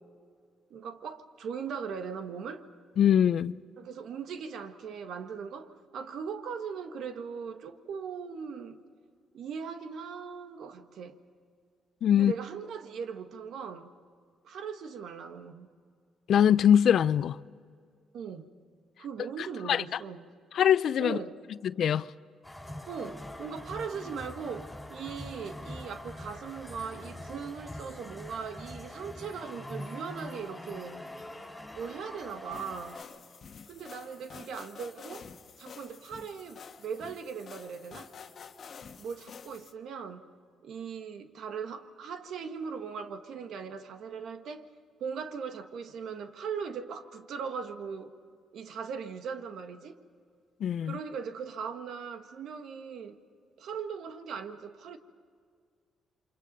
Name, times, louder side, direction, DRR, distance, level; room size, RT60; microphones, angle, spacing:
voice 1, 0.7-2.7 3.8-8.8 9.3-11.2 12.1-13.9 14.4-15.7 18.1-18.5 19.0-20.3 21.0-21.4 22.9-31.0 31.7-33.0 33.7-35.3 35.6-38.1 39.0-40.3 40.6-44.7 45.0-48.1 48.5-50.0 50.8-53.2 53.6-55.0, right 6 dB, 70° right, 1.6 m, -39 dB
voice 2, 3.0-3.6 12.0-12.3 16.3-17.4 19.7-19.8 20.5-21.2 21.6-22.1 50.6-51.0, left 9 dB, 65° left, 0.5 m, -22 dB
sound 1, 22.4-33.0, left 1 dB, 5° left, 5.4 m, -43 dB
sound 2, 32.5-39.7, left 6 dB, 50° left, 1.6 m, -49 dB
28.5 x 25.5 x 5.4 m
cardioid pair, 90°, 0 cm